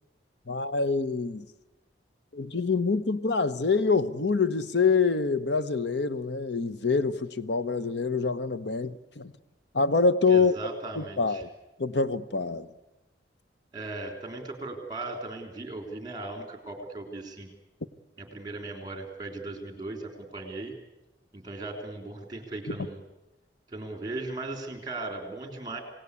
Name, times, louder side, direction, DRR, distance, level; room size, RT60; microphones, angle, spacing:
voice 1, 0.5-1.5 2.3-9.3 9.7-10.5 11.0-11.5 11.8-12.7 22.7-22.8, left 4 dB, 70° left, 0.9 m, -26 dB
voice 2, 10.3-11.4 13.7-17.5 18.2-20.7 21.3-23.0 23.7-25.8, right 2 dB, 20° right, 3.4 m, -37 dB
27.0 x 18.0 x 8.3 m
head